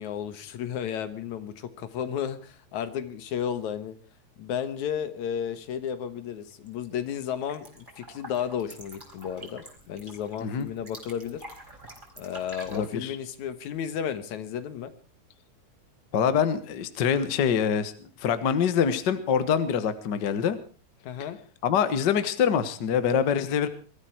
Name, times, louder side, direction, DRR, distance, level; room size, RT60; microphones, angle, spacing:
voice 1, 0.0-3.9 4.4-11.4 12.2-14.9 21.0-21.4, left 8 dB, 75° left, 12 dB, 2.5 m, -33 dB
sound 1, 6.5-6.9 7.2-12.9, right 1 dB, 15° right, 4.6 m, -47 dB
voice 2, 12.7-13.1 16.1-17.9 18.2-20.6 21.6-23.7, left 7 dB, 45° left, 11 dB, 1.5 m, -25 dB
23.0 x 14.0 x 4.5 m, 0.37 s
omnidirectional pair, 3.5 m